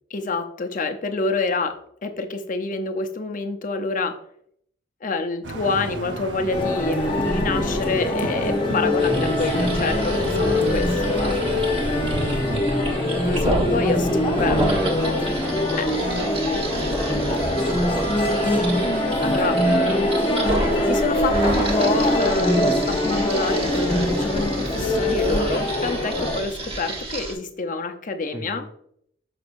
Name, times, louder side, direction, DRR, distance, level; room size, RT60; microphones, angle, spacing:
voice 1, 0.1-4.2 5.0-11.4 13.2-14.6 14.9-15.1 15.8-15.9 18.8-20.2 20.9-28.7, left 3 dB, 45° left, 7 dB, 0.7 m, -27 dB
sound 1, 5.4-12.6, right 2 dB, 70° right, 0.9 m, -32 dB
sound 2, 6.5-26.4, left 1 dB, 30° left, 1.1 m, -23 dB
sound 3, 9.0-27.3, right 1 dB, 30° right, 1.3 m, -30 dB
voice 2, 12.4-13.1 13.4-15.8 16.1-18.2 28.3-28.7, right 1 dB, 10° right, 0 dB, 0.6 m, -33 dB
6.2 x 6.1 x 2.6 m, 0.67 s
head